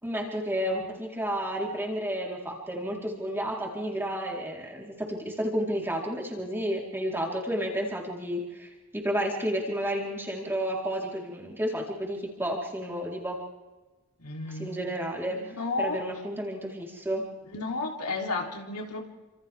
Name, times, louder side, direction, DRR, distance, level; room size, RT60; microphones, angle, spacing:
voice 1, 0.0-13.4 14.5-15.4 15.8-17.3, equal, 10° right, -2 dB, 4.3 m, -31 dB
voice 2, 14.2-14.9 15.3-16.0 17.5-19.0, left 3 dB, 90° left, 1 dB, 3.5 m, -32 dB
29.0 x 27.0 x 3.7 m, 1.2 s
head